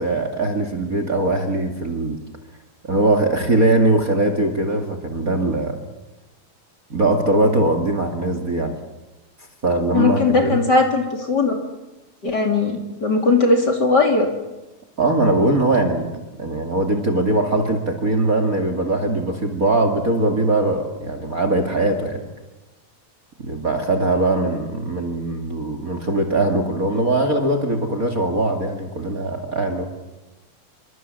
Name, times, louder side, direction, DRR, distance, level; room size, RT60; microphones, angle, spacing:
voice 1, 0.0-2.2 2.8-5.8 6.9-8.7 9.6-10.6 15.0-22.2 23.4-29.8, right 2 dB, 30° right, 6 dB, 2.4 m, -21 dB
voice 2, 9.9-11.6 12.2-14.3, left 3 dB, 35° left, 3 dB, 3.2 m, -18 dB
27.0 x 24.0 x 7.7 m, 1.1 s
omnidirectional pair, 3.4 m